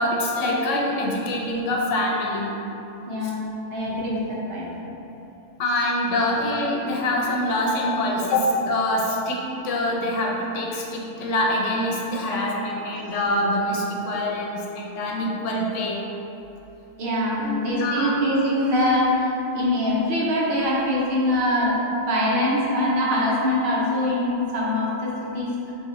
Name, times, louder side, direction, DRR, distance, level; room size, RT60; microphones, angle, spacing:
voice 1, 0.0-2.5 3.7-3.8 5.6-16.0 17.4-17.5 17.8-18.2, left 1 dB, 85° left, -1 dB, 0.9 m, -25 dB
voice 2, 3.1-4.7 17.0-25.7, left 1 dB, 55° right, -7 dB, 0.9 m, -23 dB
5.0 x 2.3 x 3.0 m, 3.0 s
omnidirectional pair, 1.3 m